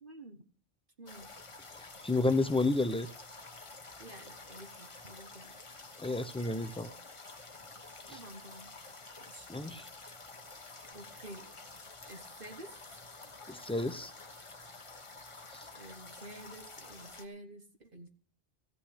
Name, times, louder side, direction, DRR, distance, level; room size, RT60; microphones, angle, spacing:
voice 1, 0.0-0.4 1.0-1.3 4.0-5.5 8.1-8.7 9.2-9.5 10.9-11.5 12.1-12.7 15.7-18.1, right 1 dB, 45° right, 5 dB, 1.5 m, -50 dB
sound 1, 1.1-17.3, left 3 dB, 25° left, 1.1 m, -50 dB
voice 2, 2.0-3.1 6.0-6.9 8.1-8.2 9.5-9.9 13.5-14.1 15.5-15.7, left 2 dB, 5° left, 11 dB, 0.5 m, -31 dB
15.5 x 5.8 x 10.0 m, 0.43 s
omnidirectional pair, 1.2 m